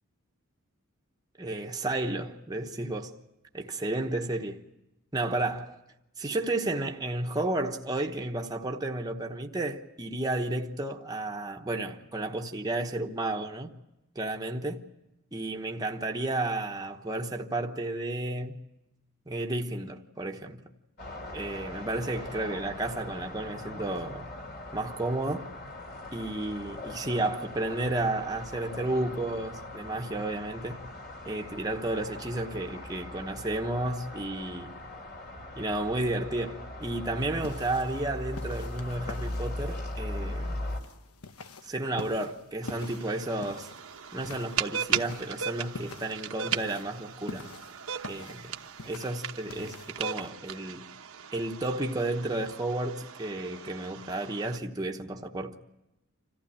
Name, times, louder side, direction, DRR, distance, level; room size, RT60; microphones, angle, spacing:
voice 1, 1.4-3.2 3.5-4.6 5.1-5.8 6.2-13.7 14.1-14.8 15.3-18.6 19.3-20.6 21.3-24.3 24.7-25.5 26.1-30.8 31.2-34.7 35.6-40.6 41.6-43.7 44.1-47.4 48.1-48.5 48.8-50.9 51.3-55.5, right 2 dB, 15° right, 1.1 m, -32 dB
sound 1, 21.0-40.8, left 1 dB, 45° left, 2.8 m, -40 dB
sound 2, 37.2-50.3, left 3 dB, 85° left, 1.1 m, -46 dB
sound 3, 42.6-54.6, right 8 dB, 65° right, 1.0 m, -37 dB
26.5 x 15.0 x 10.0 m
head